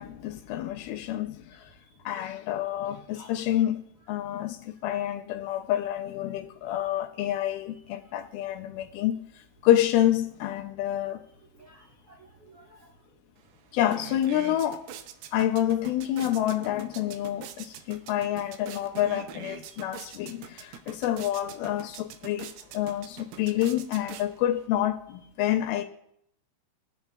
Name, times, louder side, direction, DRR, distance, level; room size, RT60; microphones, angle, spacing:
voice 1, 0.0-1.7 2.1-3.8 4.1-11.2 13.7-14.9 15.3-25.8, left 12 dB, 85° left, 2.4 m, -28 dB
voice 2, 3.1-3.6 8.0-8.1 11.5-12.9 19.7-19.9, equal, 70° right, 1.3 m, -53 dB
sound 1, 13.4-13.5 13.8-24.7, right 9 dB, 90° right, 2.5 m, -44 dB
21.5 x 8.0 x 2.3 m
omnidirectional pair, 4.2 m